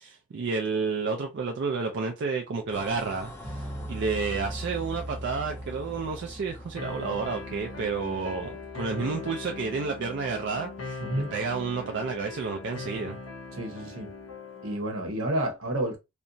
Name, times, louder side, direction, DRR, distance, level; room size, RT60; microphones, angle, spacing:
voice 1, 0.0-11.0 11.3-13.2, right 4 dB, 55° right, 0.4 m, -31 dB
sound 1, 2.7-8.7, left 1 dB, 10° left, 0.4 m, -46 dB
sound 2, 3.4-14.3, equal, 30° right, 0.8 m, -43 dB
sound 3, 6.8-14.8, left 3 dB, 85° left, 0.6 m, -40 dB
voice 2, 11.0-11.3 13.5-14.1 14.6-16.0, right 1 dB, 80° right, 1.0 m, -30 dB
2.8 x 2.2 x 2.5 m
head